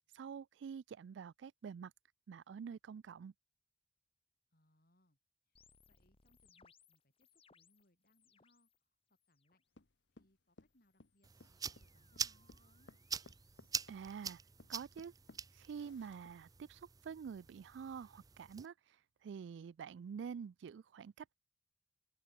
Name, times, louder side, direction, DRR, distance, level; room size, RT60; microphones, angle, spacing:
voice 1, 0.1-1.9 2.3-3.3 13.9-14.4 14.7-15.1 15.5-18.7 19.2-21.4, right 6 dB, 80° right, 0.3 m, -47 dB
voice 2, 4.5-5.2 5.9-8.7 9.1-9.6 10.1-12.9, left 1 dB, 55° left, 6.3 m, -75 dB
sound 1, 5.6-8.8 9.1-9.6 10.7-14.8, left 5 dB, 30° left, 2.2 m, -72 dB
sound 2, 9.7-16.5, left 2 dB, 75° left, 1.3 m, -62 dB
sound 3, 11.2-18.7, right 6 dB, 20° right, 0.5 m, -46 dB
head